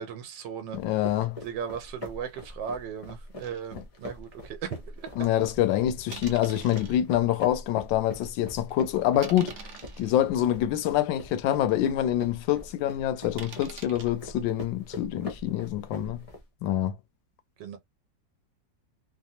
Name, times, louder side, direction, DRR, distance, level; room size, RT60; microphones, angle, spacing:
voice 1, 0.0-1.0 1.4-5.3 17.6-17.8, right 7 dB, 85° right, 1.3 m, -37 dB
voice 2, 0.7-1.4 5.2-9.7 10.0-16.2 16.6-17.0, left 12 dB, 85° left, 1.3 m, -26 dB
sound 1, 0.7-16.4, left 1 dB, 60° left, 0.3 m, -43 dB
sound 2, 3.4-3.6 4.2-4.3 5.2-5.5 6.1-7.0 7.6-7.7 8.2-8.4 9.2-10.1 10.8-10.9 11.4-11.5 11.7-11.8 13.4-14.1, right 6 dB, 65° right, 0.7 m, -44 dB
3.4 x 2.0 x 2.7 m
omnidirectional pair, 2.0 m